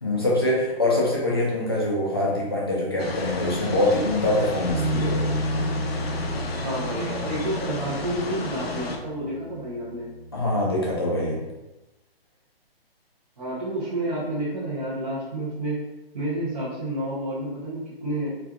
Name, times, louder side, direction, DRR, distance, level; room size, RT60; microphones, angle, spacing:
voice 1, 0.0-5.3 10.3-11.4, left 1 dB, 25° left, -4 dB, 0.5 m, -24 dB
sound 1, 3.0-9.0, left 2 dB, 75° left, 0.7 m, -32 dB
Bass guitar, 4.7-11.0, right 1 dB, 75° right, 0.9 m, -31 dB
voice 2, 6.5-10.0 13.4-15.8 16.1-18.4, right 1 dB, 35° right, -9 dB, 0.8 m, -30 dB
4.3 x 2.4 x 2.4 m, 1.0 s
hypercardioid pair, 175°, 30 cm